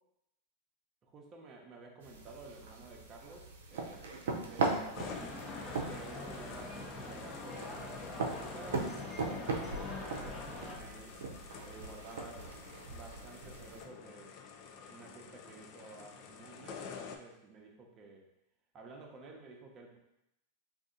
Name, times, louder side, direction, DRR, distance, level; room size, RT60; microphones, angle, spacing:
voice 1, 1.0-5.3 5.8-11.2 11.6-14.4 14.9-18.2 18.7-20.0, right 3 dB, 30° right, 0 dB, 0.7 m, -52 dB
sound 1, 2.0-13.8, right 3 dB, 80° right, 0.6 m, -40 dB
sound 2, 4.9-17.2, left 6 dB, 50° left, 0.3 m, -49 dB
sound 3, 5.0-10.8, left 2 dB, 20° left, 0.7 m, -44 dB
2.6 x 2.5 x 3.8 m, 0.86 s
hypercardioid pair, 120°, 0 cm